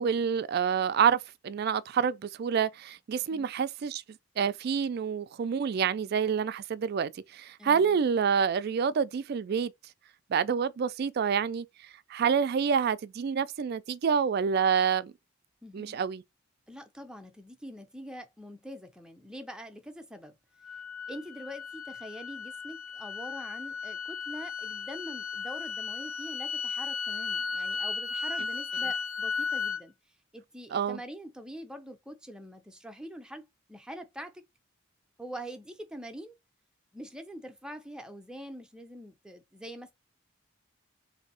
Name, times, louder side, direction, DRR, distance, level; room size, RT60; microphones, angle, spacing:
voice 1, 0.0-4.0 4.4-9.7 10.3-11.7 12.1-15.1 15.7-16.2 30.7-31.0, right 7 dB, 50° right, 0.3 m, -27 dB
voice 2, 7.6-8.0 15.6-16.0 16.7-20.3 21.1-29.9 30.3-34.4 35.2-36.4 36.9-39.9, equal, 5° right, 0.6 m, -44 dB
sound 1, 20.6-29.8, left 5 dB, 90° left, 0.5 m, -35 dB
3.3 x 2.7 x 4.1 m
head